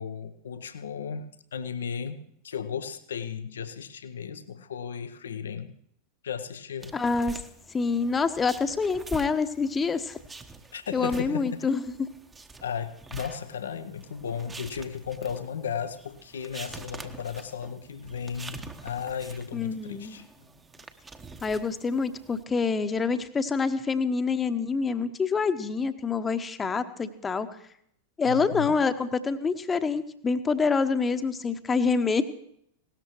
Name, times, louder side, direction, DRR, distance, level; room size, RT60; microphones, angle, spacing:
voice 1, 0.0-5.7 6.2-7.0 10.7-11.7 12.6-20.2 28.2-28.7, left 7 dB, 65° left, 11 dB, 0.8 m, -35 dB
sound 1, 6.8-22.4, right 3 dB, 15° right, 1.1 m, -46 dB
voice 2, 6.9-7.4 7.7-10.2 10.9-12.1 19.5-20.2 21.4-27.5 28.2-32.2, left 4 dB, 15° left, 10 dB, 1.1 m, -26 dB
19.5 x 18.0 x 3.1 m, 0.70 s
figure-of-eight pair, 90°, 0 cm